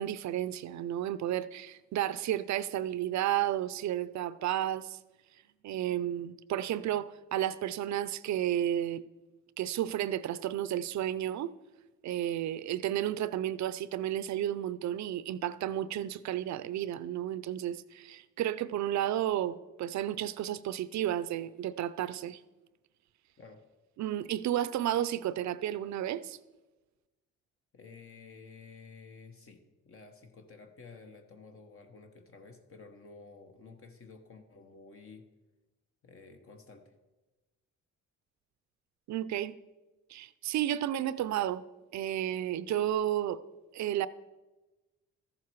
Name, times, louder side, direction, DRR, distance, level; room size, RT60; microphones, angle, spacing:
voice 1, 0.0-5.0 5.6-9.1 9.6-11.5 12.0-22.4 24.0-26.4 39.1-39.6 40.1-41.6 41.9-43.4 43.7-44.1, right 12 dB, 65° right, 0.6 m, -32 dB
voice 2, 27.7-35.3 36.0-36.9, left 4 dB, 45° left, 1.1 m, -52 dB
14.0 x 7.4 x 4.6 m
cardioid pair, 90°, 30 cm